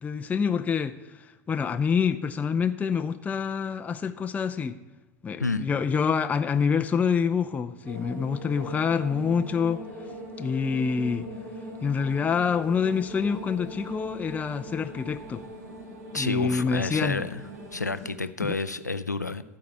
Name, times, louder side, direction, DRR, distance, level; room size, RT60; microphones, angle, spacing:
voice 1, 0.0-4.8 5.2-9.8 10.4-11.3 11.8-15.4 16.1-17.3 18.4-18.6, left 6 dB, 15° left, 0.5 m, -27 dB
sound 1, 7.8-18.1, equal, 65° right, 2.2 m, -41 dB
voice 2, 16.1-17.4 17.7-19.4, left 3 dB, 90° left, 0.4 m, -29 dB
13.0 x 4.7 x 8.0 m
figure-of-eight pair, 80°, 9 cm